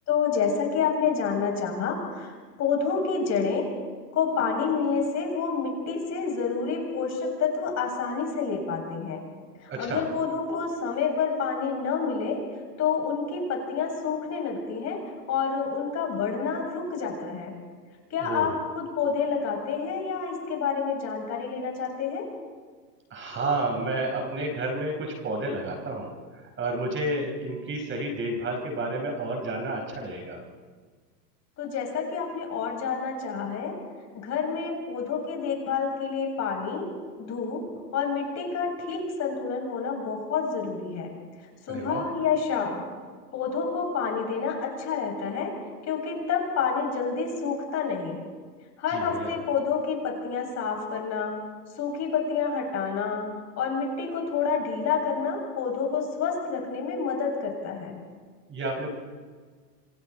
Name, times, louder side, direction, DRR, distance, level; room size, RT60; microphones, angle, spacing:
voice 1, 0.1-2.3 2.6-3.7 4.1-9.2 9.6-12.4 12.8-15.0 15.3-17.5 18.1-22.3 31.6-33.7 34.1-36.8 37.2-37.6 37.9-41.1 41.6-42.8 43.3-45.5 45.8-48.2 48.8-51.3 51.8-53.2 53.6-58.0, left 5 dB, 30° left, 1 dB, 7.4 m, -28 dB
voice 2, 9.7-10.0 18.2-18.5 23.1-26.2 26.6-30.4 41.7-42.0 48.9-49.3 58.5-58.9, right 2 dB, 25° right, 2 dB, 5.0 m, -30 dB
28.5 x 27.5 x 4.4 m, 1.5 s
hypercardioid pair, 120°, 50 cm